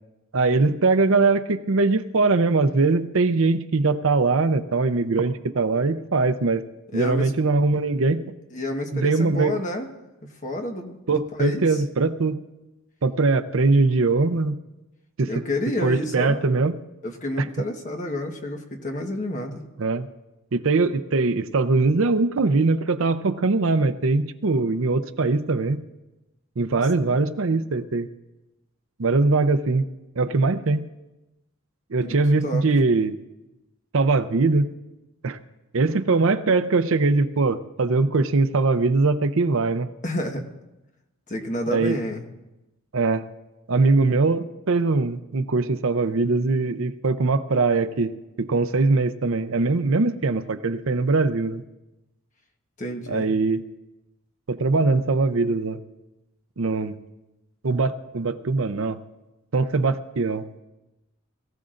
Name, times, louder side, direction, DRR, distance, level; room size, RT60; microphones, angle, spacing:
voice 1, 0.3-6.6 6.9-8.2 8.9-9.6 11.1-12.4 13.0-14.6 15.2-15.3 15.8-16.8 19.8-20.1 20.5-25.8 26.6-28.1 29.0-29.8 30.2-30.8 31.9-33.2 33.9-34.7 35.2-35.4 35.7-39.9 41.7-42.0 42.9-43.2 43.7-51.6 53.1-53.6 54.5-55.8 56.6-57.0 57.6-59.0 59.5-60.5, right 3 dB, 65° right, 11 dB, 0.6 m, -21 dB
voice 2, 6.9-7.3 8.5-9.9 10.4-11.8 15.3-16.5 17.0-19.6 26.8-26.9 32.0-32.2 32.4-32.6 40.0-40.4 41.3-42.2 52.8-53.3, left 1 dB, 35° left, 3 dB, 1.3 m, -29 dB
22.0 x 15.0 x 2.5 m, 0.99 s
head